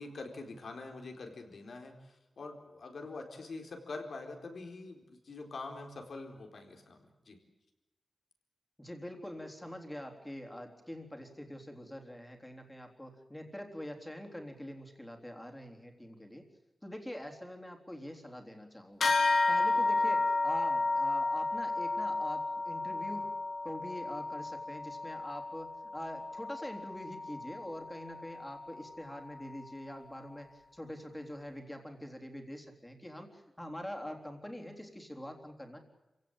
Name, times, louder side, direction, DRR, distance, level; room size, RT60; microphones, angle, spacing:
voice 1, 0.0-7.4, left 3 dB, 70° left, 4 dB, 4.2 m, -45 dB
voice 2, 8.8-16.5 16.8-19.2 19.5-23.3 23.6-35.8, left 1 dB, 10° left, 3 dB, 3.6 m, -44 dB
sound 1, 19.0-28.8, left 3 dB, 85° left, 3.0 m, -32 dB
27.5 x 17.0 x 8.9 m, 1.0 s
wide cardioid pair, 115°, 0 cm